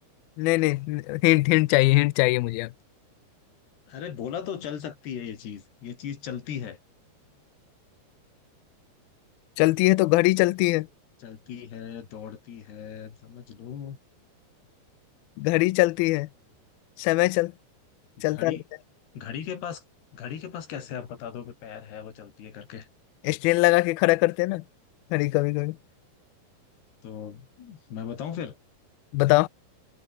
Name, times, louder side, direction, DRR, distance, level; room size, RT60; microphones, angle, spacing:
voice 1, 0.4-2.7 9.6-10.9 15.4-16.3 17.0-17.5 18.2-18.6 23.2-24.6 25.1-25.8 29.1-29.5, left 21 dB, 85° left, 2.1 m, -22 dB
voice 2, 3.9-6.8 11.2-14.0 18.3-18.6 19.1-19.8 20.1-22.9 27.0-28.6, left 8 dB, 65° left, 5.2 m, -37 dB
omnidirectional pair, 5.0 m